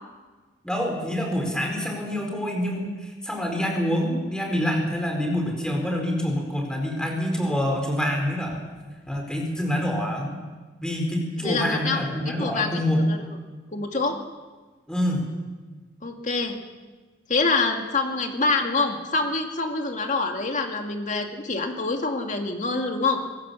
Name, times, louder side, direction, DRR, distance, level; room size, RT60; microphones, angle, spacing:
voice 1, 0.6-2.9 3.2-8.6 9.1-10.4 10.8-13.0 14.9-15.2, equal, 5° left, 1 dB, 4.5 m, -26 dB
voice 2, 11.4-12.0 12.4-12.7 13.1-13.2 13.7-14.2 16.0-16.6 17.3-23.2, left 3 dB, 40° left, 4 dB, 2.2 m, -25 dB
25.5 x 17.0 x 7.0 m, 1.3 s
head